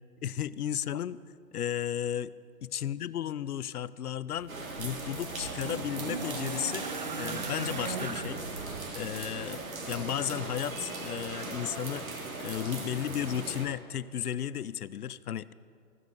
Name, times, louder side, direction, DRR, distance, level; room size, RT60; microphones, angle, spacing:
voice 1, 0.2-1.2 1.5-2.3 2.6-6.9 7.2-8.4 8.9-12.1 12.4-15.5, left 10 dB, 75° left, 17 dB, 0.5 m, -34 dB
sound 1, 4.3-9.5 10.6-10.7, right 4 dB, 30° right, 0.4 m, -39 dB
sound 2, 4.5-13.7, right 3 dB, 60° right, 2.0 m, -39 dB
18.5 x 15.0 x 2.7 m, 2.2 s
figure-of-eight pair, 125°, 47 cm